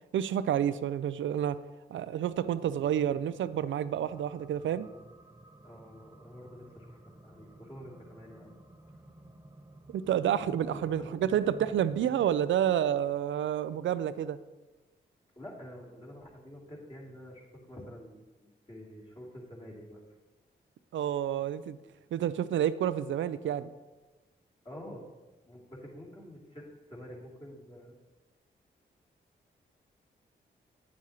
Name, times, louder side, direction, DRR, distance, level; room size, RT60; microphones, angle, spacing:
voice 1, 0.1-1.6 1.9-4.9 9.9-14.4 20.9-21.8 22.1-23.7, right 10 dB, 70° right, 15 dB, 0.4 m, -29 dB
sound 1, 2.4-12.3, right 1 dB, 15° right, 0.7 m, -52 dB
voice 2, 5.6-8.6 10.6-11.3 15.4-20.0 24.6-25.0 25.5-28.0, equal, 25° left, -5 dB, 2.8 m, -48 dB
9.3 x 7.3 x 2.9 m, 1.2 s
supercardioid pair, 40°, 21 cm